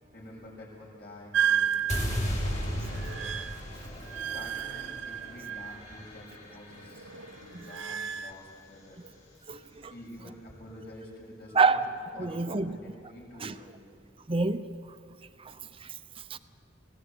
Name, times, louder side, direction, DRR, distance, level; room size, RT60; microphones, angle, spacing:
voice 1, 0.1-3.2 4.2-9.0 9.9-11.9 12.1-13.9, left 1 dB, 55° left, -3 dB, 7.6 m, -48 dB
sound 1, 1.3-6.1 6.4-8.3, right 9 dB, 80° right, 1.0 m, -33 dB
sound 2, 1.9-8.1, equal, 40° left, 6.1 m, -36 dB
voice 2, 9.5-9.9 11.6-11.9 12.2-12.7 13.4-13.5 14.3-14.6 15.4-15.5 15.8-15.9 16.3-16.4, right 4 dB, 30° right, 10 dB, 0.8 m, -26 dB
23.0 x 17.5 x 8.2 m, 2.5 s
head